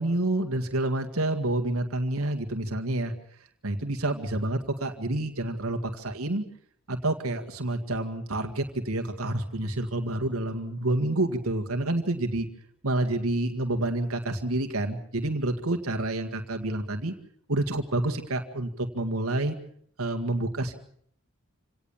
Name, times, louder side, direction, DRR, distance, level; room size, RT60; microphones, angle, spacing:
voice 1, 0.0-3.1 3.6-6.4 6.9-12.5 12.8-17.1 17.5-19.6 20.0-20.7, right 2 dB, 75° right, 5 dB, 2.0 m, -28 dB
27.0 x 18.0 x 7.2 m, 0.64 s
head